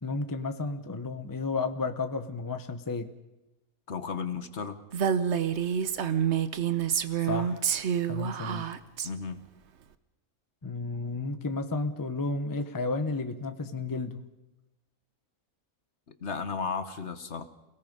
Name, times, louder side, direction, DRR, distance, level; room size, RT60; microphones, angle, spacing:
voice 1, 0.0-3.1 7.2-7.7 8.1-8.7 10.6-14.2, left 3 dB, 15° left, 8 dB, 0.8 m, -32 dB
voice 2, 3.9-4.8 9.0-9.5 16.2-17.4, left 5 dB, 55° left, 10 dB, 1.5 m, -34 dB
Female speech woman speaking, 4.9-9.1, right 8 dB, 55° right, 1.1 m, -28 dB
28.5 x 17.5 x 5.3 m, 0.99 s
omnidirectional pair, 1.5 m